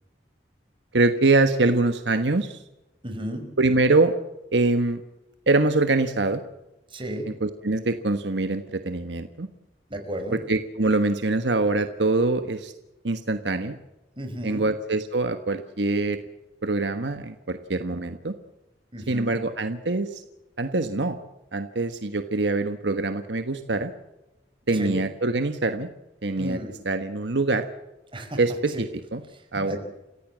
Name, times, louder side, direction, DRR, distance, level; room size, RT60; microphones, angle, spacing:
voice 1, 0.9-2.6 3.6-4.1 4.5-5.0 5.5-6.4 7.3-9.5 10.3-12.7 13.0-13.8 14.4-16.2 16.6-18.3 19.1-20.2 20.6-21.2 21.5-23.9 24.7-25.9 26.2-26.6 26.8-27.7 28.4-29.2 29.5-29.8, right 2 dB, 75° right, 8 dB, 1.3 m, -24 dB
voice 2, 3.0-3.4 6.9-7.3 9.9-10.4 14.2-14.6 18.9-19.4 24.7-25.0 26.4-26.7 28.1-28.4 28.7-28.8 29.6-29.8, equal, 30° right, 5 dB, 5.1 m, -33 dB
29.5 x 16.0 x 7.5 m, 0.98 s
head